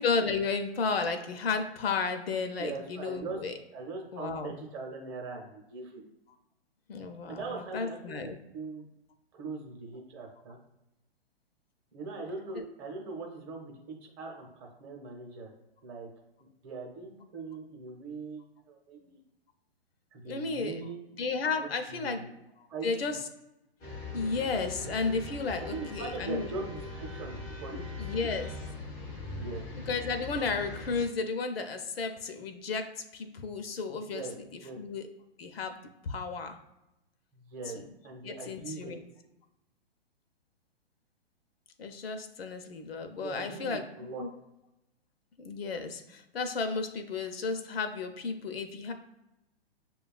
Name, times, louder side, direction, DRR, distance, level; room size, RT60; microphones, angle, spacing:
voice 1, 0.0-3.5 4.1-4.5 6.9-8.4 12.5-12.6 20.2-20.8 21.2-22.2 22.8-23.2 24.1-26.5 28.0-28.5 29.9-34.2 34.5-35.1 35.4-35.8 36.0-36.6 37.7-37.8 38.2-39.0 41.8-43.8 44.2-44.3 45.4-48.9, left 4 dB, 70° left, 7 dB, 0.6 m, -33 dB
voice 2, 2.6-3.4 3.7-6.0 7.3-8.8 9.3-10.6 11.9-15.5 15.8-16.1 16.4-19.2 20.1-21.0 21.6-22.3 22.7-23.2 25.6-28.1 29.3-29.6 34.1-34.3 34.6-34.8 37.3-37.8 38.0-38.9 43.2-44.2, right 4 dB, 30° right, 1 dB, 0.8 m, -41 dB
sound 1, 23.8-31.1, left 2 dB, 10° left, 0.4 m, -41 dB
6.6 x 2.3 x 2.3 m, 0.90 s
hypercardioid pair, 125°, 31 cm